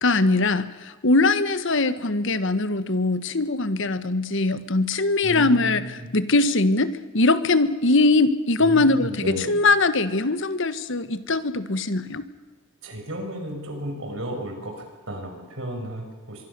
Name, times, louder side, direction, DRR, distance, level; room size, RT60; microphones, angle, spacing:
voice 1, 0.0-5.8 6.1-12.2, left 3 dB, 60° left, 13 dB, 1.4 m, -21 dB
voice 2, 5.2-6.1 8.6-9.5 12.8-16.5, equal, 65° right, 3 dB, 6.1 m, -33 dB
24.5 x 23.0 x 6.9 m, 1.4 s
head